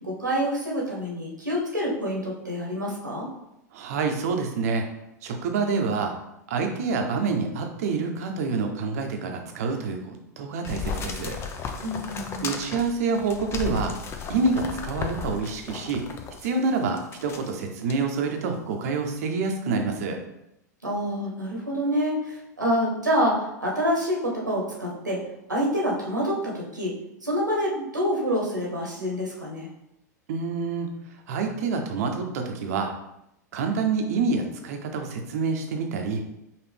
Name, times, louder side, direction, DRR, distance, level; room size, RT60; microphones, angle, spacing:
voice 1, 0.0-3.3 11.8-12.5 20.8-25.2 25.5-26.9 27.2-29.7, equal, 90° right, -2 dB, 1.1 m, -27 dB
voice 2, 3.7-4.8 5.2-6.1 6.5-11.4 12.4-13.9 14.3-16.0 16.4-20.2 30.3-30.9 31.3-32.9 33.5-36.2, right 4 dB, 60° right, 4 dB, 0.7 m, -27 dB
sound 1, 10.6-16.5 17.0-17.5 17.9-18.0, left 5 dB, 25° left, 0.5 m, -35 dB
5.0 x 2.5 x 3.4 m, 0.83 s
figure-of-eight pair, 95°, 10 cm